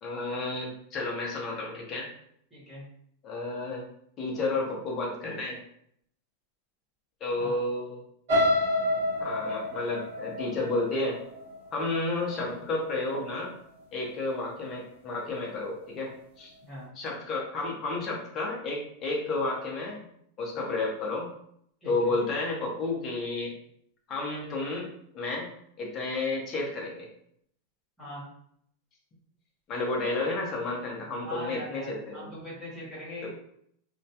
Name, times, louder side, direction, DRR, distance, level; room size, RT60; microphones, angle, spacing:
voice 1, 0.0-2.1 3.2-3.8 4.2-5.6 7.2-8.0 9.2-11.2 11.7-13.5 13.9-16.5 17.0-20.1 20.4-21.3 21.8-23.5 24.1-24.9 25.1-25.5 25.8-27.1 29.7-32.3 33.2-33.3, left 2 dB, 25° left, -2 dB, 0.5 m, -31 dB
voice 2, 2.5-2.8 7.4-7.6 16.6-16.9 21.8-22.2 28.0-28.2 31.2-33.3, equal, 5° left, -8 dB, 1.0 m, -40 dB
sound 1, 8.3-12.2 12.7-13.0 13.4-13.5, left 1 dB, 55° right, 0.8 m, -28 dB
2.2 x 2.1 x 2.7 m, 0.69 s
supercardioid pair, 170°, 0 cm